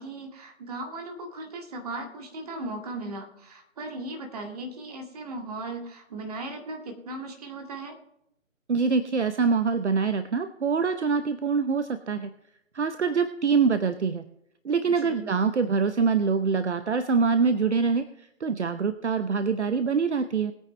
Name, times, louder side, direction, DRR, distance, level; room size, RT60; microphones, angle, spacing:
voice 1, 0.0-8.0 14.9-15.3, right 2 dB, 30° right, 2 dB, 2.0 m, -37 dB
voice 2, 8.7-12.3 12.7-14.2 14.6-20.5, right 5 dB, 55° right, 10 dB, 0.8 m, -25 dB
20.0 x 9.1 x 3.2 m, 0.78 s
figure-of-eight pair, 155°, 40 cm